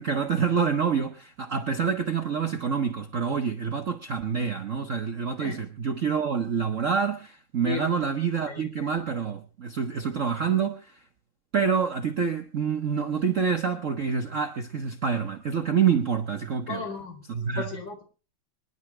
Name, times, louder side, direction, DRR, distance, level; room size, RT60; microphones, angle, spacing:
voice 1, 0.0-11.0 11.5-16.8 17.3-17.7, right 6 dB, 50° right, 1.0 m, -27 dB
voice 2, 16.7-17.2 17.6-18.0, left 4 dB, 60° left, 4.6 m, -35 dB
25.5 x 11.0 x 3.3 m
omnidirectional pair, 2.4 m